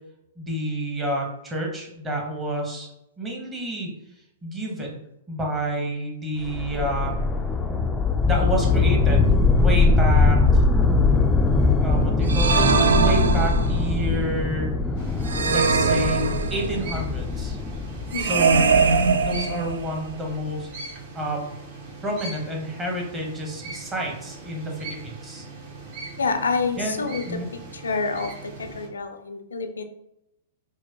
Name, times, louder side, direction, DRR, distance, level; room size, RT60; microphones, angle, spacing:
voice 1, 0.4-2.9 3.2-3.9 4.4-5.0 5.3-7.2 8.2-9.3 9.6-10.6 11.8-14.7 15.5-17.6 18.2-20.7 21.1-21.4 22.0-25.5 26.8-27.5, right 1 dB, 20° right, 0 dB, 1.0 m, -29 dB
sound 1, 6.4-19.5, left 3 dB, 10° left, 0.4 m, -21 dB
sound 2, 12.3-14.0 15.3-16.9 18.1-20.0, right 5 dB, 70° right, 0.3 m, -21 dB
sound 3, 15.0-28.9, right 3 dB, 45° right, 1.0 m, -40 dB
voice 2, 26.2-27.4 27.7-29.8, left 4 dB, 75° left, 8 dB, 0.4 m, -28 dB
4.4 x 2.1 x 2.8 m, 0.84 s
figure-of-eight pair, 105°, 0 cm